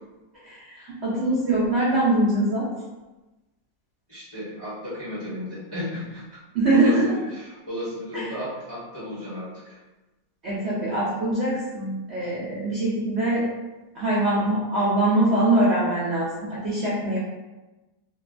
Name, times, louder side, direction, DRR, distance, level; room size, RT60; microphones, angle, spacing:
voice 1, 0.4-2.7 6.5-7.2 8.1-8.3 10.4-13.5 13.9-17.2, right 1 dB, 70° right, -8 dB, 0.6 m, -23 dB
voice 2, 4.1-6.4 6.7-9.8, left 1 dB, 25° left, -11 dB, 0.6 m, -34 dB
3.1 x 2.2 x 2.4 m, 1.1 s
omnidirectional pair, 1.9 m